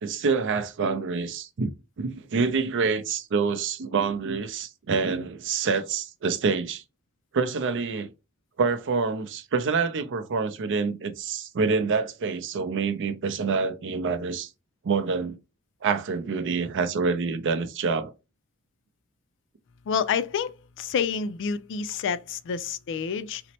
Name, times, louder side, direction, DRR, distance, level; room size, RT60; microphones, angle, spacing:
voice 1, 0.0-1.7 2.0-6.8 7.3-8.1 8.6-14.5 14.8-15.4 15.8-18.1, right 5 dB, 55° right, 0.5 m, -26 dB
voice 2, 19.9-23.4, left 6 dB, 55° left, 0.3 m, -28 dB
4.2 x 2.0 x 2.8 m
head